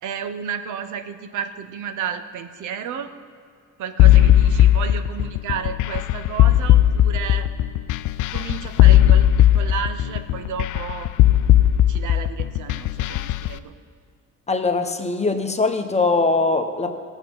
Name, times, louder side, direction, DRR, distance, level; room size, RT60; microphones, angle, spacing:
voice 1, 0.0-3.1 3.8-7.5 8.3-11.1 11.9-13.7, right 7 dB, 75° right, 10 dB, 0.8 m, -32 dB
sound 1, 4.0-13.5, left 12 dB, 80° left, 0.5 m, -16 dB
voice 2, 14.5-16.9, left 3 dB, 20° left, 6 dB, 1.0 m, -21 dB
18.0 x 7.1 x 5.5 m, 2.2 s
cardioid pair, 90°, 30 cm